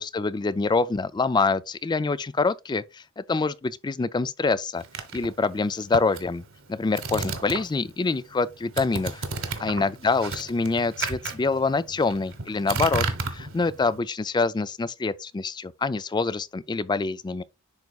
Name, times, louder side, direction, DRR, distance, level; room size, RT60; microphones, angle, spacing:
voice 1, 0.0-4.8 5.1-6.4 6.7-9.2 9.6-13.1 13.3-17.4, left 4 dB, 20° left, 0.3 m, -26 dB
sound 1, 4.8-7.9 8.2-14.0, right 3 dB, 70° right, 1.3 m, -33 dB
10.5 x 4.1 x 2.3 m
head